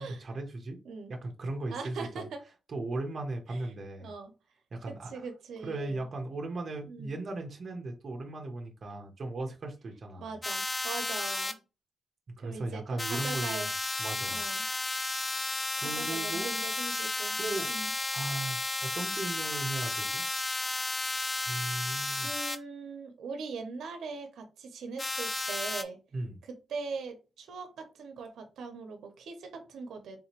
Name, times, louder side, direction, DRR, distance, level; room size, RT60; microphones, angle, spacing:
voice 1, 0.0-0.8 1.1-2.3 2.7-4.1 4.7-5.3 5.6-10.3 12.4-13.7 14.0-14.5 15.5-16.6 17.4-20.2 21.5-22.3 26.1-26.4, right 2 dB, 40° right, 0.8 m, -37 dB
voice 2, 1.7-2.4 3.5-3.7 4.0-4.3 4.9-6.1 6.9-7.1 10.2-11.6 12.4-13.7 14.3-14.7 15.8-17.4 17.7-17.9 21.5-21.9 22.2-26.0 26.4-30.2, right 4 dB, 85° right, 0.7 m, -41 dB
sound 1, 10.4-11.5 13.0-22.6 25.0-25.8, left 2 dB, 15° left, 0.3 m, -33 dB
3.8 x 2.8 x 2.9 m
wide cardioid pair, 155°, 0 cm